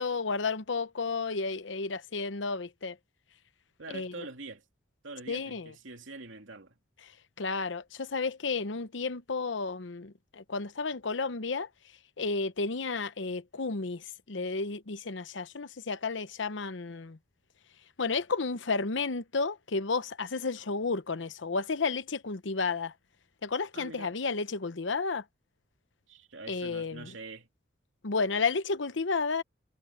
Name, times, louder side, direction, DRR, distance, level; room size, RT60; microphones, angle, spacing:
voice 1, 0.0-3.0 3.9-4.2 5.3-5.7 7.4-11.7 12.2-17.2 18.0-22.9 23.4-25.2 26.5-27.1 28.0-29.4, left 4 dB, 75° left, 0.9 m, -32 dB
voice 2, 3.8-4.6 5.0-6.8 23.7-24.1 26.1-27.5, right 3 dB, 85° right, 2.7 m, -44 dB
head